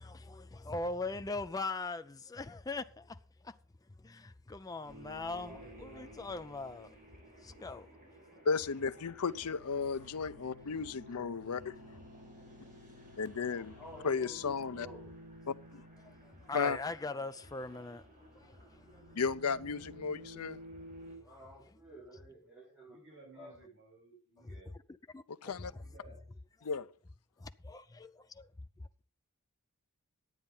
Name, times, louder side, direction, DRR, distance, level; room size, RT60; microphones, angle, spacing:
voice 1, 0.1-3.6 4.0-7.0 7.3-8.0 8.3-8.4 16.0-18.1 18.3-19.2 24.4-24.6 25.1-25.8 27.4-28.5 28.8-29.0, left 3 dB, 15° left, 0.4 m, -41 dB
sound 1, 4.8-21.2, equal, 40° right, 4.9 m, -53 dB
voice 2, 5.2-6.1 13.4-15.1 21.1-23.5, right 1 dB, 5° right, 4.9 m, -52 dB
voice 3, 8.4-11.8 13.2-13.7 14.0-14.9 15.5-15.8 16.5-16.8 19.1-20.6 25.4-25.7 26.6-26.9, left 5 dB, 85° left, 0.6 m, -34 dB
voice 4, 22.9-24.7 25.4-26.2, right 3 dB, 60° right, 7.7 m, -58 dB
11.0 x 8.8 x 5.5 m
head